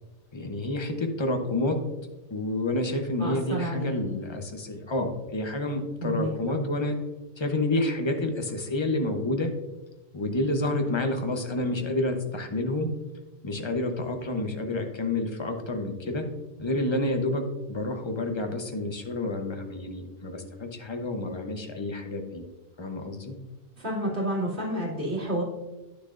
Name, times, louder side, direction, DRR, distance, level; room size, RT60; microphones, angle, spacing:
voice 1, 0.3-1.8 2.3-7.0 7.4-9.5 10.1-12.9 13.4-16.3 16.6-22.5 22.8-23.4, left 2 dB, 25° left, 5 dB, 0.8 m, -29 dB
voice 2, 3.2-3.9 6.0-6.6 23.8-25.4, right 1 dB, 70° right, -6 dB, 2.8 m, -30 dB
9.8 x 6.8 x 2.5 m, 1.1 s
omnidirectional pair, 1.1 m